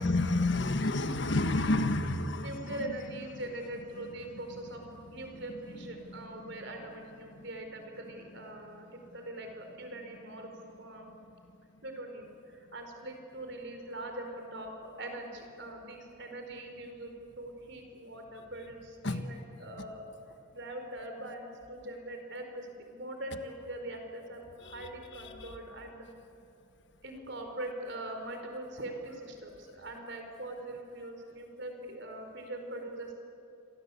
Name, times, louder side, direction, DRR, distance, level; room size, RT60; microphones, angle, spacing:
voice 1, 0.0-2.5 19.0-19.2, left 2 dB, 55° left, 8 dB, 1.5 m, -28 dB
voice 2, 2.4-4.8 5.1-10.5 10.8-11.1 11.8-14.7 15.0-20.0 20.5-26.1 27.0-33.1, right 1 dB, 55° right, 4 dB, 4.6 m, -42 dB
28.5 x 24.5 x 8.5 m, 2.6 s
head